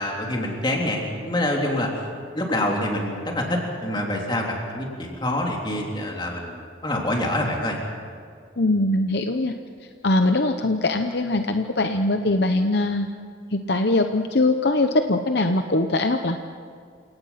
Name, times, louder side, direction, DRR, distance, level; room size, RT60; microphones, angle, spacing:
voice 1, 0.0-1.9 2.3-7.8, left 1 dB, 25° left, -1 dB, 3.4 m, -26 dB
voice 2, 8.6-9.5 10.0-13.1 13.5-16.4, left 2 dB, 55° left, 6 dB, 0.8 m, -22 dB
29.0 x 18.0 x 5.8 m, 2.2 s
head